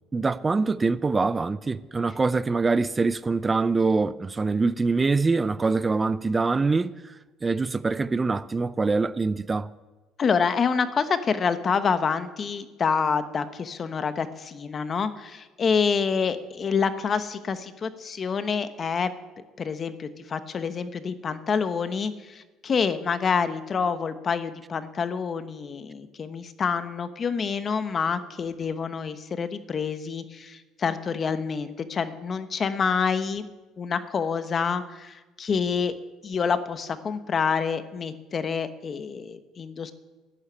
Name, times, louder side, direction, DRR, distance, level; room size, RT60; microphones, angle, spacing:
voice 1, 0.1-7.2 7.4-9.7, right 4 dB, 20° right, 0.4 m, -24 dB
voice 2, 10.2-19.1 19.6-33.5 33.8-35.9 36.2-39.9, left 6 dB, 35° left, 1.0 m, -27 dB
11.0 x 9.9 x 9.8 m
cardioid pair, 110°, 0 cm